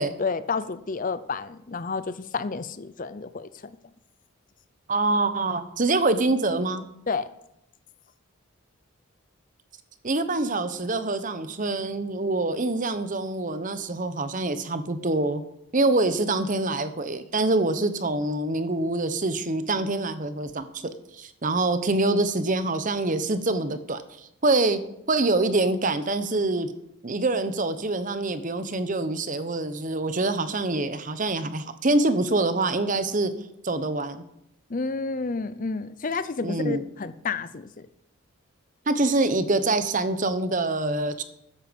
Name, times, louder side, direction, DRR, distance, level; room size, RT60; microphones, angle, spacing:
voice 1, 0.2-3.5 7.1-7.3 34.7-37.9, left 4 dB, 35° left, 14 dB, 0.5 m, -30 dB
voice 2, 4.9-6.8 10.0-15.4 15.7-24.8 25.1-26.7 27.0-33.3 33.6-34.2 36.4-36.8 38.9-41.2, right 2 dB, 35° right, 11 dB, 0.8 m, -25 dB
13.5 x 10.0 x 5.2 m, 0.81 s
head